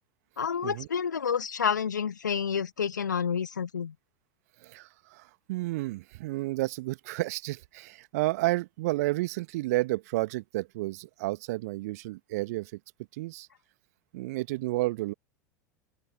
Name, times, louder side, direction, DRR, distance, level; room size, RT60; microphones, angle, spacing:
voice 1, 0.4-3.9, left 7 dB, 75° left, 1.6 m, -29 dB
voice 2, 4.6-12.8 13.1-13.5 14.1-15.1, right 19 dB, 55° right, 1.4 m, -31 dB
open air
figure-of-eight pair, 80°, 10 cm